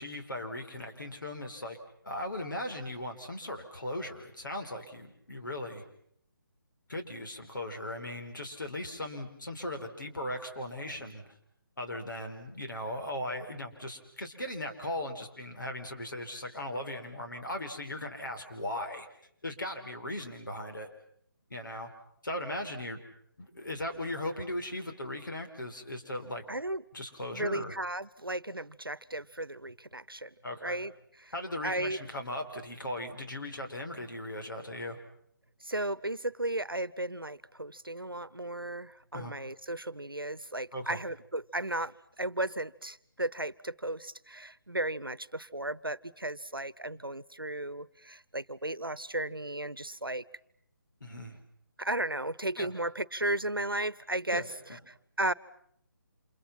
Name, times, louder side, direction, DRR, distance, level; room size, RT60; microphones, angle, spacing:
voice 1, 0.0-1.8 2.0-5.8 6.9-11.3 11.8-19.1 19.4-20.9 21.5-21.9 22.2-23.0 23.4-26.4 26.9-27.7 30.4-30.8 31.3-35.0 39.1-39.3 40.7-41.0 51.0-51.4 52.6-52.7 54.3-54.8, left 1 dB, 65° left, 3 dB, 5.0 m, -38 dB
voice 2, 26.5-26.8 27.3-30.3 30.6-30.9 31.2-31.3 31.6-32.0 35.6-50.2 51.8-54.4 54.7-55.3, right 1 dB, 85° right, 20 dB, 1.0 m, -35 dB
29.0 x 28.0 x 5.8 m, 0.69 s
figure-of-eight pair, 150°, 12 cm